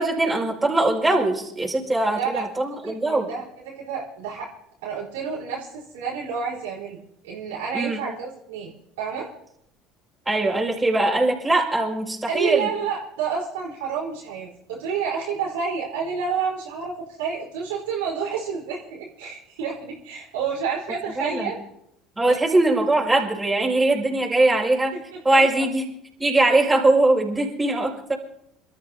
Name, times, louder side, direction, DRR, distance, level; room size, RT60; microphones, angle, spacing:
voice 1, 0.0-3.3 7.7-8.0 10.3-12.7 21.2-21.5 22.2-24.9 25.2-25.9 26.2-28.2, right 2 dB, 15° right, -1 dB, 5.4 m, -21 dB
voice 2, 2.1-2.4 2.7-4.5 4.8-7.0 7.2-8.7 9.0-9.3 12.3-21.6 22.2-22.4 25.1-25.6, right 6 dB, 75° right, -4 dB, 4.1 m, -29 dB
28.0 x 13.5 x 2.8 m, 0.77 s
hypercardioid pair, 70°, 0 cm